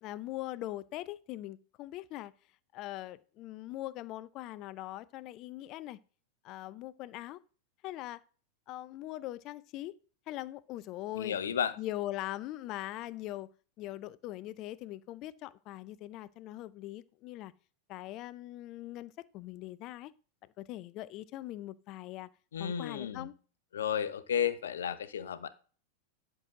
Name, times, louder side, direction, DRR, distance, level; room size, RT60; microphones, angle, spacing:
voice 1, 0.0-2.3 2.7-6.0 6.4-7.4 7.8-8.2 8.7-9.9 10.3-11.4 11.8-13.5 13.8-17.5 17.9-20.1 20.6-22.3 22.6-23.3, left 15 dB, 40° left, 0.6 m, -41 dB
voice 2, 11.1-11.8 22.5-23.3 23.7-25.5, left 8 dB, 65° left, 0.8 m, -33 dB
10.5 x 6.2 x 3.8 m
figure-of-eight pair, 90°, 0 cm